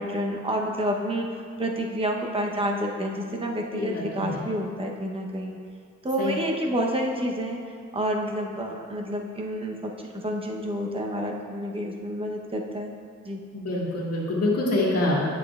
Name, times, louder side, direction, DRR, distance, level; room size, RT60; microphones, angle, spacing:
voice 1, 0.0-5.6 6.0-7.6 7.9-12.9 13.2-13.4, equal, 20° right, 1 dB, 0.8 m, -29 dB
voice 2, 3.7-4.3 6.2-6.3 13.5-15.2, left 2 dB, 55° left, -4 dB, 1.8 m, -25 dB
9.2 x 7.4 x 2.4 m, 2.2 s
cardioid pair, 105°, 30 cm